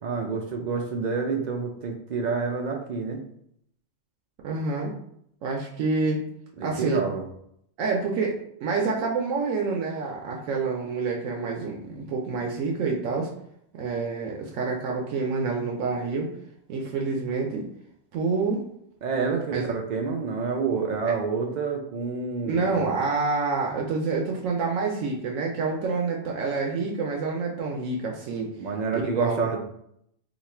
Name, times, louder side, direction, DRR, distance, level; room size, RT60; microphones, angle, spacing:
voice 1, 0.0-3.2 6.6-7.2 19.0-22.9 28.6-29.6, right 5 dB, 75° right, 3 dB, 0.4 m, -28 dB
voice 2, 4.4-4.9 5.4-6.2 6.6-7.0 7.8-13.3 13.8-16.3 16.7-17.7 18.1-18.7 19.5-19.7 21.1-21.2 22.5-28.5 28.9-29.4, right 4 dB, 90° right, -1 dB, 1.0 m, -27 dB
3.1 x 2.3 x 4.2 m, 0.72 s
omnidirectional pair, 1.3 m